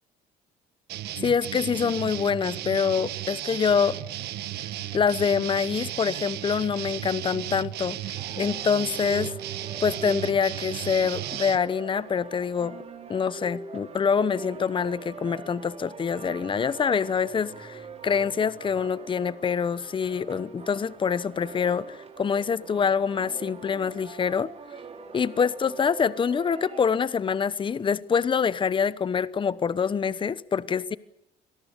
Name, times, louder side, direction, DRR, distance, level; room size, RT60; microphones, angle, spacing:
sound 1, 0.9-11.6, right 13 dB, 75° right, 1.4 m, -35 dB
voice 1, 1.2-4.0 4.9-8.0 8.3-9.3 9.8-12.8 13.1-24.5 25.1-31.0, left 6 dB, 30° left, 1.0 m, -25 dB
sound 2, 8.1-26.8, right 4 dB, 40° right, 4.2 m, -42 dB
27.0 x 19.0 x 8.4 m
cardioid pair, 110°, 17 cm